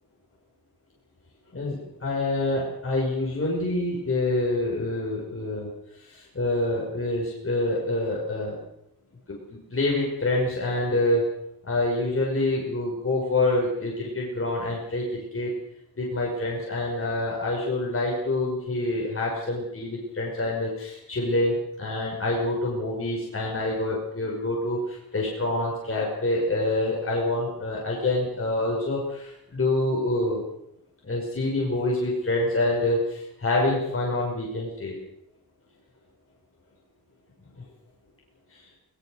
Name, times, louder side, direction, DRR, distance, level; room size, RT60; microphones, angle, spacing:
voice 1, 1.5-5.7 6.0-8.6 9.3-11.3 11.7-15.0 15.3-15.5 16.0-30.4 31.0-35.0 38.5-38.6, left 2 dB, 35° left, -3 dB, 5.9 m, -26 dB
22.0 x 20.0 x 6.6 m, 0.77 s
wide cardioid pair, 140°, 38 cm